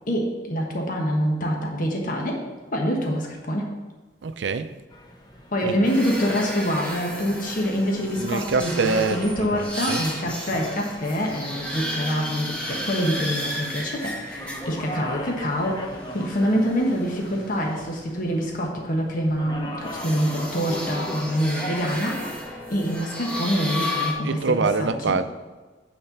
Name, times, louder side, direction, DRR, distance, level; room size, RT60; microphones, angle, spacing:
voice 1, 0.1-2.4 2.7-3.7 5.5-22.3 22.7-25.2, equal, 50° left, 1.3 m, -26 dB
voice 2, 4.2-4.7 5.6-5.9 8.2-10.5 24.2-25.2, right 4 dB, 90° right, 0.5 m, -25 dB
sound 1, 4.9-23.2, equal, 25° left, 0.9 m, -40 dB
sound 2, 5.8-15.0 15.4-17.6 19.8-24.1, left 1 dB, 5° left, 1.7 m, -33 dB
8.7 x 4.3 x 7.1 m
head